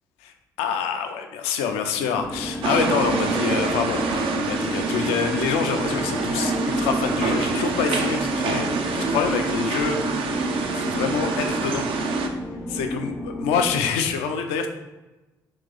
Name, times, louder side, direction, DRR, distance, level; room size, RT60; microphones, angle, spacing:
voice 1, 0.2-10.0 10.7-11.9 12.3-12.4 12.7-14.7, left 6 dB, 65° left, 6 dB, 0.5 m, -26 dB
sound 1, 2.2-13.8, left 1 dB, 15° left, 0.5 m, -31 dB
sound 2, 2.6-12.3, right 4 dB, 55° right, 0.5 m, -26 dB
3.9 x 2.9 x 3.8 m, 1.1 s
figure-of-eight pair, 45°, 11 cm